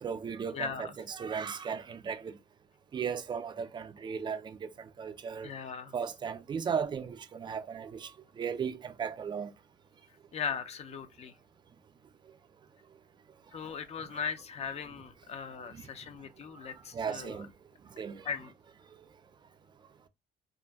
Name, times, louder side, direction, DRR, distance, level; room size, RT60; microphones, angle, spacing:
voice 1, 0.0-2.4 2.9-5.5 5.9-9.5 14.0-14.1 15.7-15.9 16.9-17.5 18.0-18.3, right 6 dB, 25° right, 0.4 m, -36 dB
voice 2, 0.5-0.9 5.4-5.9 10.3-11.3 13.5-17.5 18.2-18.5, left 6 dB, 40° left, 0.4 m, -38 dB
2.4 x 2.1 x 3.3 m
cardioid pair, 110°, 17 cm